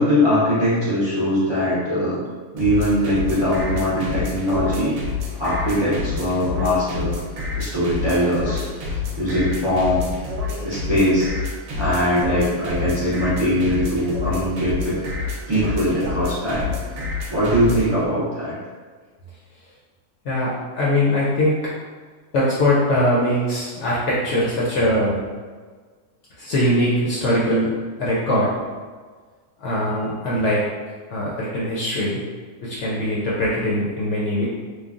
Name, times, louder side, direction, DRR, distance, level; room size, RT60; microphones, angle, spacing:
voice 1, 0.0-2.2 2.5-4.9 5.4-7.2 7.5-10.0 10.6-11.3 11.8-15.0 15.5-16.7 17.3-18.5, equal, 40° right, -10 dB, 0.4 m, -21 dB
sound 1, 2.6-17.9, left 4 dB, 70° right, 1.0 m, -28 dB
voice 2, 20.2-21.6 22.3-25.2 26.4-27.7 28.0-28.5 29.6-30.6 31.1-32.2 32.6-34.5, left 1 dB, 65° left, -7 dB, 0.8 m, -21 dB
3.1 x 2.2 x 2.3 m, 1.5 s
omnidirectional pair, 1.5 m